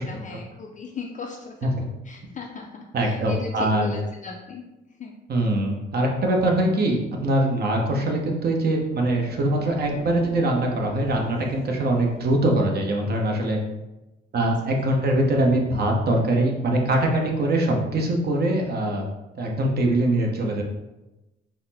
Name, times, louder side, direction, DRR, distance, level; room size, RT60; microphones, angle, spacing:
voice 1, 0.0-1.8 2.0-4.6 4.9-5.2 14.4-14.7 15.0-15.2, left 4 dB, 40° left, 0 dB, 0.4 m, -37 dB
voice 2, 2.9-3.9 5.3-13.6 14.3-19.0 19.3-20.6, right 1 dB, 55° right, 1 dB, 0.8 m, -22 dB
sound 1, 8.5-13.1, equal, 25° right, 1.3 m, -44 dB
4.0 x 2.0 x 4.0 m, 1.0 s
cardioid pair, 90°, 20 cm